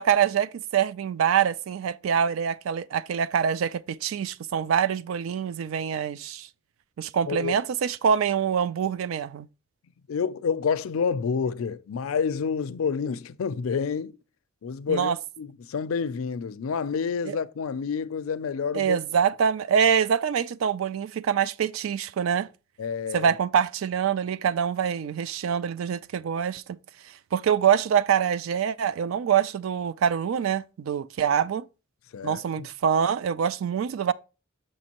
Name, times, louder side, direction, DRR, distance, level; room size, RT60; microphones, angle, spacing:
voice 1, 0.0-6.5 7.0-9.5 14.9-15.2 17.3-17.4 18.7-22.5 23.1-26.8 27.3-31.6 32.2-34.1, right 8 dB, 75° right, 0.3 m, -25 dB
voice 2, 10.1-14.2 14.6-19.0 22.8-23.3 32.1-32.7, left 6 dB, 80° left, 0.4 m, -29 dB
6.5 x 5.2 x 2.9 m
head